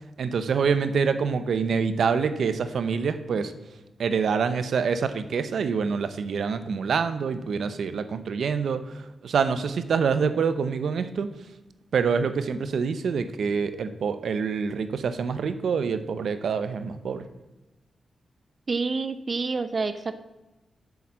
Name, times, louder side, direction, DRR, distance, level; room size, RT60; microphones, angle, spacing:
voice 1, 0.2-3.5 4.0-8.9 9.2-11.3 11.9-17.2, right 6 dB, 80° right, 11 dB, 0.8 m, -26 dB
voice 2, 18.7-20.2, right 4 dB, 45° right, 11 dB, 0.6 m, -28 dB
7.9 x 7.1 x 7.4 m, 1.0 s
cardioid pair, 85°, 0 cm